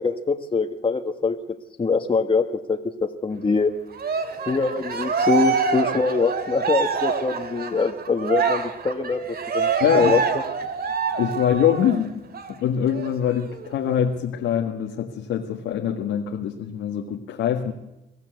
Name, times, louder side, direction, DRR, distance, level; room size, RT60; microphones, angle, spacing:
voice 1, 0.0-1.4 1.8-3.7 4.5-10.2, left 4 dB, 25° left, 4 dB, 1.5 m, -23 dB
Cheering, 4.0-12.0 12.3-12.5 12.9-13.9, right 5 dB, 50° right, 2.5 m, -26 dB
voice 2, 9.8-10.2 11.2-12.1 12.5-17.7, left 9 dB, 85° left, 1 dB, 1.8 m, -24 dB
24.0 x 15.0 x 8.0 m, 0.97 s
cardioid pair, 90°, 20 cm